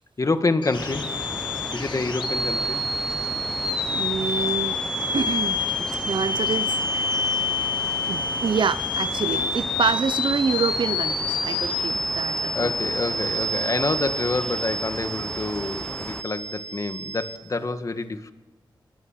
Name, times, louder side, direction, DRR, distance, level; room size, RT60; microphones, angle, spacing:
voice 1, 0.2-1.1 1.7-2.8 12.5-18.3, left 3 dB, 40° left, 1.9 m, -27 dB
sound 1, 0.6-17.4, left 2 dB, 70° left, 2.4 m, -28 dB
sound 2, 0.7-16.2, left 1 dB, 5° left, 0.8 m, -36 dB
voice 2, 3.9-4.8 5.1-7.7 8.1-12.7, right 5 dB, 70° right, 0.8 m, -27 dB
27.5 x 22.0 x 7.5 m
wide cardioid pair, 90°, 8 cm